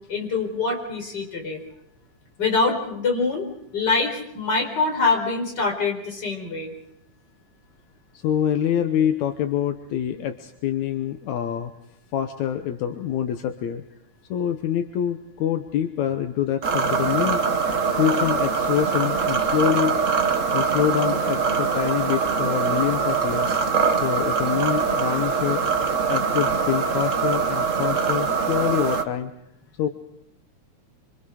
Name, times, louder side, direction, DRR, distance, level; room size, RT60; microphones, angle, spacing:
voice 1, 0.1-1.6 2.4-3.5 3.7-6.7, left 3 dB, 35° left, 2 dB, 5.1 m, -24 dB
voice 2, 8.1-11.7 12.1-13.8 14.3-17.5 18.0-20.0 20.5-23.5 24.0-25.6 26.1-29.3 29.8-29.9, left 10 dB, 80° left, 7 dB, 2.3 m, -25 dB
sound 1, 16.6-29.0, right 5 dB, 55° right, 0.8 m, -23 dB
27.0 x 25.5 x 4.9 m, 0.80 s
omnidirectional pair, 3.3 m